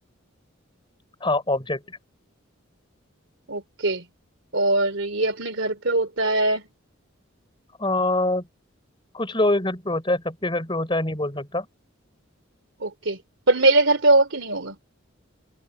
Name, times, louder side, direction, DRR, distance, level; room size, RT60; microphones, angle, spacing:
voice 1, 1.2-2.0 7.8-8.5 9.1-11.7, left 2 dB, 25° left, 3.8 m, -24 dB
voice 2, 3.5-4.0 4.5-6.6 12.8-13.2 13.5-14.8, right 2 dB, 65° right, 3.1 m, -21 dB
head